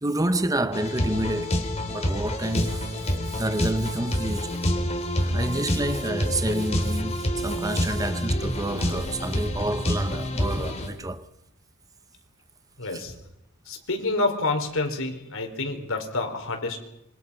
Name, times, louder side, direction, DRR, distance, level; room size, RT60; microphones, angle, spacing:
voice 1, 0.0-1.6 1.9-4.5 5.2-11.3 12.9-13.0, right 1 dB, 15° right, 0.9 m, -29 dB
sound 1, 0.7-10.9, left 1 dB, 30° left, 4.0 m, -27 dB
voice 2, 12.8-13.1 13.6-16.8, left 2 dB, 60° left, 4.7 m, -28 dB
27.0 x 25.5 x 5.7 m
head